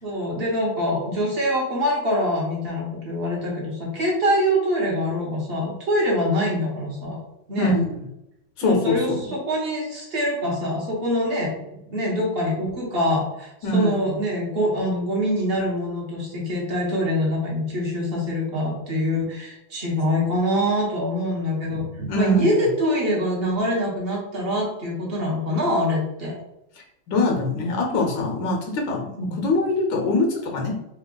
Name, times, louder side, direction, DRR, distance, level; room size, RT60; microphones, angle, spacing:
voice 1, 0.0-7.2 7.5-7.8 8.6-26.4 29.2-29.4, equal, 40° right, -3 dB, 1.0 m, -24 dB
voice 2, 7.6-8.0 8.6-9.2 13.6-14.0 22.1-22.6 26.8-29.1 29.4-30.7, left 2 dB, 70° left, 1 dB, 1.3 m, -23 dB
3.4 x 2.4 x 3.7 m, 0.86 s
omnidirectional pair, 2.2 m